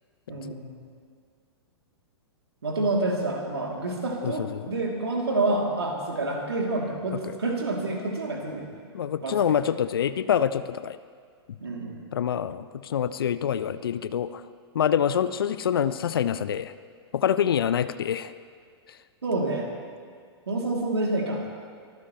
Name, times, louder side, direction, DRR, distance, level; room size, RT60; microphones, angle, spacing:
voice 1, 0.3-0.8 2.6-8.7 9.2-9.4 11.6-12.0 19.2-19.7 20.5-21.4, right 2 dB, 65° right, 0 dB, 3.2 m, -28 dB
voice 2, 4.2-4.7 7.1-7.4 8.9-11.0 11.5-11.6 12.1-14.4 14.7-16.7 17.1-18.3, left 9 dB, 55° left, 14 dB, 0.6 m, -26 dB
23.5 x 15.0 x 3.3 m, 2.1 s
figure-of-eight pair, 105°, 14 cm